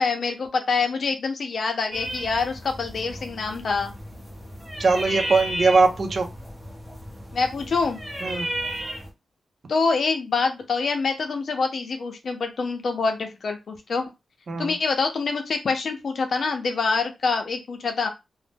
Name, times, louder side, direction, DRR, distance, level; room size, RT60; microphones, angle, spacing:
voice 1, 0.0-3.9 7.3-8.0 9.7-14.1 14.6-18.1, left 4 dB, 55° left, 5 dB, 0.6 m, -25 dB
sound 1, 1.9-9.1, equal, 5° right, 0.7 m, -34 dB
voice 2, 4.8-6.3 8.2-8.5 14.5-14.7, right 4 dB, 50° right, 6 dB, 0.6 m, -21 dB
2.6 x 2.1 x 3.4 m, 0.23 s
wide cardioid pair, 145°, 0 cm